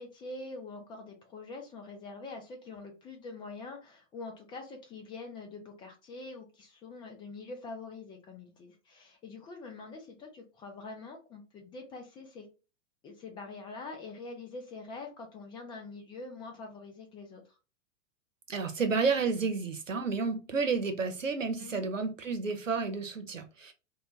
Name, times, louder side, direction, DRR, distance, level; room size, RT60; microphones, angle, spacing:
voice 1, 0.0-12.5 13.0-17.4 21.6-21.9, left 3 dB, 15° left, 0.4 m, -45 dB
voice 2, 18.5-23.7, right 4 dB, 85° right, 0.7 m, -31 dB
2.2 x 2.2 x 3.8 m
figure-of-eight pair, 100°, 37 cm